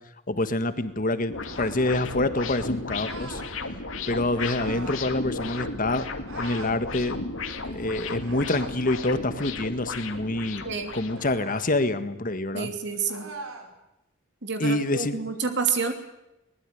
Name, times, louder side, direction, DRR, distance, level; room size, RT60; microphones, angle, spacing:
voice 1, 0.3-3.4 4.1-7.2 7.7-10.7 10.9-12.7 14.6-15.2, left 2 dB, 40° left, 10 dB, 1.8 m, -27 dB
sound 1, 1.3-11.4, left 3 dB, 70° left, 2.5 m, -35 dB
sound 2, 1.4-2.0 3.0-3.5 4.6-5.1 6.3-6.8 8.2-8.8 11.1-11.7 13.1-13.7, right 3 dB, 80° right, 4.7 m, -42 dB
voice 2, 12.5-13.3 14.4-15.9, right 5 dB, 60° right, 6 dB, 3.0 m, -28 dB
22.0 x 20.5 x 9.5 m, 0.88 s
head